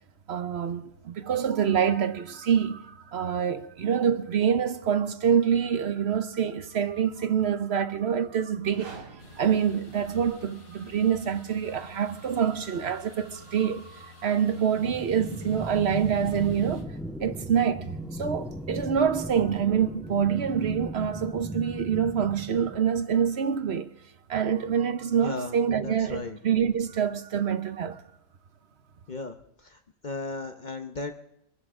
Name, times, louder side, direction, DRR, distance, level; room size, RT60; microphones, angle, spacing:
voice 1, 0.3-16.9 17.2-23.9 24.3-28.0, right 8 dB, 50° right, 0.8 m, -26 dB
sound 1, 8.5-10.6, right 4 dB, 65° right, 2.3 m, -48 dB
sound 2, 9.2-16.8, left 7 dB, 85° left, 2.7 m, -52 dB
sound 3, 14.8-22.8, equal, ahead, 0.4 m, -38 dB
voice 2, 25.2-25.6 25.8-26.4 29.1-29.4 29.6-29.8 30.0-31.1, left 3 dB, 50° left, 0.5 m, -35 dB
25.0 x 12.0 x 3.7 m
omnidirectional pair, 1.9 m